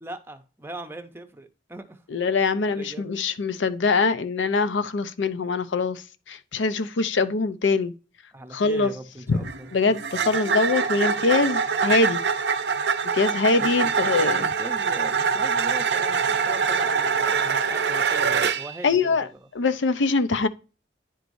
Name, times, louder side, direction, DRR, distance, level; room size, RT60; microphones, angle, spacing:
voice 1, 0.0-2.0 2.7-3.2 8.3-9.7 13.6-19.5, right 1 dB, 10° right, 0.6 m, -40 dB
voice 2, 2.1-7.9 8.5-8.9 9.3-9.5 9.7-12.2 13.1-14.5 18.8-19.3 19.5-20.5, left 4 dB, 80° left, 0.6 m, -23 dB
sound 1, 9.3-18.8, right 6 dB, 65° right, 0.6 m, -24 dB
10.0 x 4.6 x 2.6 m
head